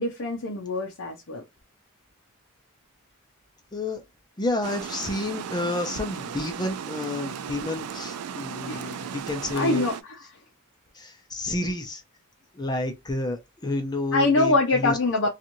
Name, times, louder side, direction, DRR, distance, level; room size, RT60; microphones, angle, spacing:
voice 1, 0.0-1.4 8.7-9.0 9.6-10.2 14.1-15.3, left 2 dB, 65° left, 0.6 m, -24 dB
voice 2, 3.7-4.0 4.4-9.9 10.9-12.0 12.5-15.0, left 2 dB, 20° left, 0.5 m, -30 dB
Water, 4.6-10.0, right 7 dB, 85° right, 0.4 m, -36 dB
2.9 x 2.4 x 2.6 m
head